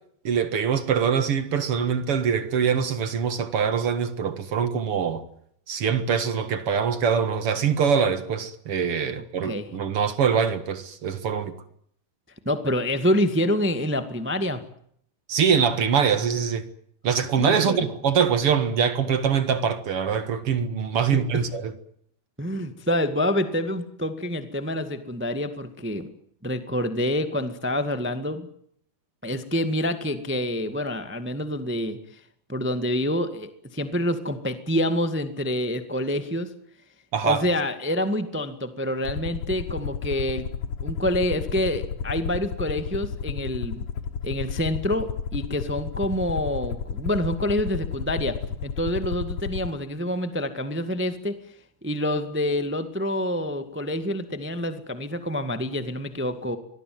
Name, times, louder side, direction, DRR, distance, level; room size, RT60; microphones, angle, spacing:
voice 1, 0.2-5.2 5.7-11.5 15.3-16.7 17.0-21.7 37.1-37.4, right 7 dB, 50° right, 2.0 m, -23 dB
voice 2, 12.4-14.6 17.4-17.8 21.1-21.5 22.4-26.1 26.4-28.5 29.2-32.2 32.5-36.5 37.2-40.5 40.8-43.8 44.2-51.3 51.8-56.6, left 1 dB, 15° right, 0.4 m, -27 dB
Aircraft, 39.1-49.7, left 7 dB, 55° left, 1.7 m, -32 dB
24.5 x 19.5 x 9.5 m
omnidirectional pair, 4.3 m